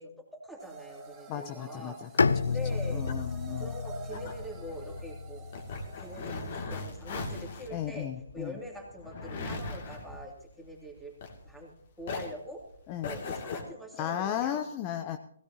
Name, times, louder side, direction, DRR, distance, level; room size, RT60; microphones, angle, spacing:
voice 1, 0.0-2.2 2.5-3.1 3.6-5.5 6.0-8.1 8.3-11.1 11.4-12.6 13.0-14.6, equal, ahead, -1 dB, 2.7 m, -44 dB
sound 1, 0.6-6.6, right 2 dB, 15° right, 2.9 m, -49 dB
voice 2, 1.3-2.6 2.9-3.7 7.7-8.6 12.9-13.1 14.0-15.2, left 10 dB, 25° left, 7 dB, 0.7 m, -35 dB
Bowed string instrument, 2.2-6.1, left 4 dB, 75° left, 0.5 m, -31 dB
sound 2, 2.6-11.7 12.0-13.6, left 3 dB, 45° left, 2.5 m, -39 dB
16.5 x 16.5 x 2.9 m, 0.69 s
hypercardioid pair, 150°, 0 cm